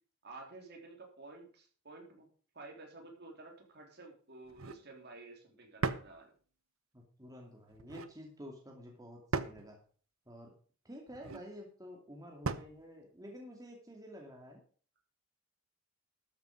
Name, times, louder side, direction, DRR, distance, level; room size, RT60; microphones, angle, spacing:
voice 1, 0.2-2.3 2.5-6.3, right 3 dB, 55° right, 1 dB, 3.6 m, -52 dB
sound 1, 4.5-4.9 5.8-6.2 7.7-8.1 9.3-9.7 11.1-11.5 12.4-12.8, right 4 dB, 80° right, 0.9 m, -37 dB
voice 2, 6.9-9.8 10.3-10.5 10.8-14.6, equal, 15° right, 0 dB, 2.5 m, -50 dB
13.0 x 8.1 x 5.3 m, 0.43 s
head